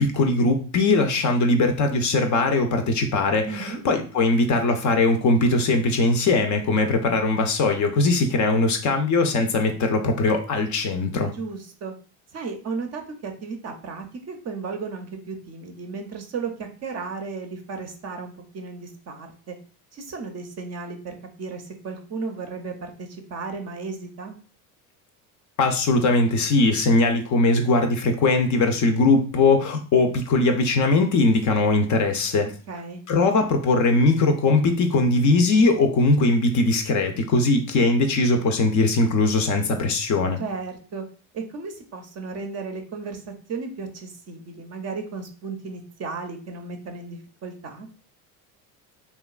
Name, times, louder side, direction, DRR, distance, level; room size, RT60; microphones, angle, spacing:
voice 1, 0.0-11.3 25.6-32.5 33.1-40.4, left 3 dB, 40° left, 5 dB, 0.4 m, -20 dB
voice 2, 3.5-3.8 11.3-11.9 12.3-19.6 19.9-24.4 32.7-33.0 40.4-41.0 41.3-43.2 43.5-47.9, right 4 dB, 35° right, 5 dB, 0.5 m, -34 dB
2.9 x 2.2 x 2.3 m, 0.39 s
supercardioid pair, 90°, 46 cm